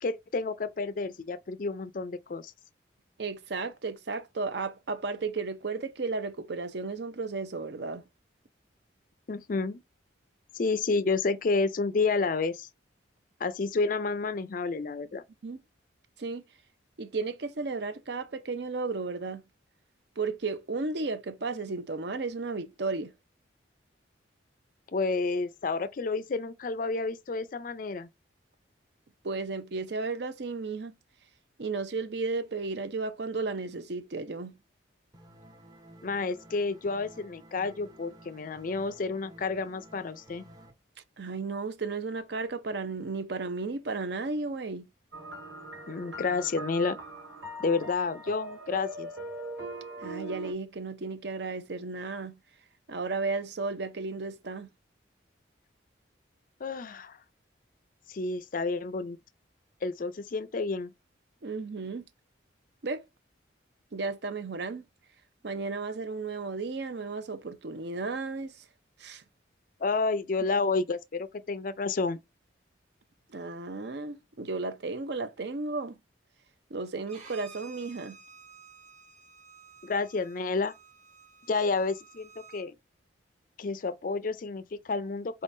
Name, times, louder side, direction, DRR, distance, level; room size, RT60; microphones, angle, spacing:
voice 1, 0.0-2.5 9.3-9.8 10.5-12.7 13.4-15.2 24.9-28.1 36.0-40.4 45.9-47.0 47.6-49.1 56.6-57.2 58.1-59.2 59.8-60.9 69.8-72.2 79.8-80.7 81.5-82.8 83.6-85.4, left 4 dB, 45° left, 0.4 m, -30 dB
voice 2, 3.2-8.0 15.4-15.6 16.2-16.4 17.0-19.4 20.2-23.1 29.2-30.9 31.6-34.6 41.2-44.9 50.0-52.4 52.9-54.7 61.4-62.0 62.8-63.0 63.9-64.8 65.4-68.6 69.0-69.2 73.3-76.0 76.7-78.2, right 3 dB, 60° right, 0.6 m, -34 dB
sound 1, 35.1-40.7, right 1 dB, 20° right, 0.7 m, -53 dB
sound 2, 45.1-50.5, right 1 dB, 75° right, 1.7 m, -40 dB
Bowed string instrument, 77.1-82.6, right 5 dB, 35° right, 1.4 m, -53 dB
4.4 x 3.7 x 2.6 m
head